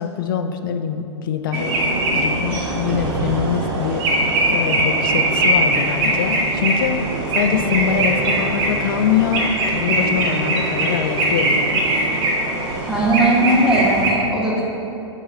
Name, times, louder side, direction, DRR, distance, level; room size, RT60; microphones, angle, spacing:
voice 1, 0.0-1.8 2.1-4.2 4.5-7.0 7.3-11.8, left 8 dB, 50° left, 7 dB, 0.5 m, -23 dB
sound 1, 1.5-14.1, right 2 dB, 30° right, 0.9 m, -21 dB
voice 2, 12.9-14.6, right 1 dB, 5° right, -6 dB, 1.2 m, -18 dB
4.9 x 4.9 x 5.2 m, 2.8 s
figure-of-eight pair, 105°, 15 cm